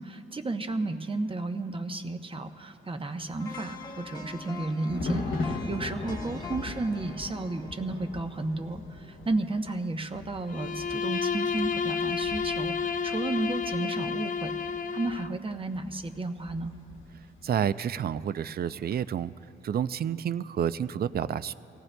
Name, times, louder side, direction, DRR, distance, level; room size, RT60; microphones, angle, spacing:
voice 1, 0.0-16.7, right 2 dB, 25° right, 6 dB, 0.8 m, -33 dB
Thunder, 3.1-17.7 18.0-18.3, left 2 dB, 75° left, 1.1 m, -40 dB
sound 1, 3.4-9.4 9.8-9.9, left 4 dB, 20° left, 1.1 m, -45 dB
Bowed string instrument, 10.5-15.4, left 6 dB, 40° left, 0.5 m, -31 dB
voice 2, 17.4-19.3 19.6-21.5, right 9 dB, 50° right, 15 dB, 0.4 m, -29 dB
24.5 x 17.5 x 2.2 m, 3.0 s
cardioid pair, 95°, 21 cm